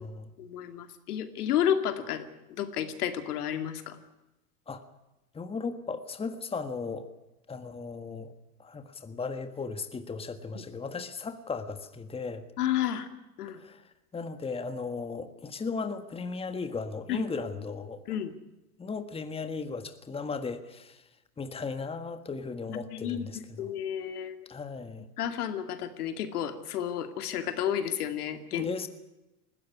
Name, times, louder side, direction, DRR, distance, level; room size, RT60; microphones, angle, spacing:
voice 1, 0.4-2.2 2.5-4.0 10.5-10.6 12.6-13.1 13.4-13.6 17.1-17.2 18.1-18.3 22.7-23.3 23.6-24.4 25.2-28.7, left 10 dB, 75° left, 9 dB, 2.3 m, -31 dB
voice 2, 5.3-7.0 7.5-8.3 8.6-12.4 13.6-13.8 14.1-18.0 18.8-21.0 21.4-23.7 24.5-25.1 28.5-28.9, left 4 dB, 10° left, 9 dB, 1.5 m, -36 dB
20.0 x 15.5 x 9.8 m, 0.98 s
hypercardioid pair, 110°, 46 cm